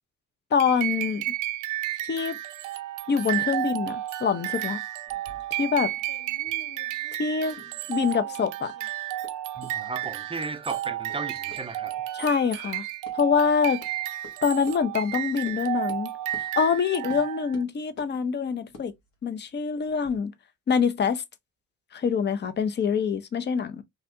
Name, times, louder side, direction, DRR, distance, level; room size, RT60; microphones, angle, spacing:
voice 1, 0.5-1.3 2.1-2.4 3.1-4.8 5.6-5.9 7.2-7.6 7.9-8.7 12.1-12.8 13.1-13.8 14.4-16.1 16.6-18.9 19.2-20.3 20.7-21.2 21.9-23.8, left 6 dB, 35° left, 0.6 m, -25 dB
sound 1, 0.6-17.6, right 15 dB, 90° right, 0.5 m, -32 dB
sound 2, 5.1-8.9 9.2-9.3 9.6-9.7 10.0-10.1 10.7-10.8 11.1-11.2 11.5-11.6 11.9-12.3 12.6-12.7 13.1-13.2 13.8-13.9 14.2-14.3 14.7-14.8 15.5-15.6 15.9-16.0 16.3-16.5 17.1-17.2 17.5-18.1 18.6-20.2, left 3 dB, 70° left, 1.3 m, -48 dB
voice 2, 9.6-12.0, right 3 dB, 20° right, 0.5 m, -35 dB
3.1 x 2.7 x 2.5 m
cardioid pair, 90°, 30 cm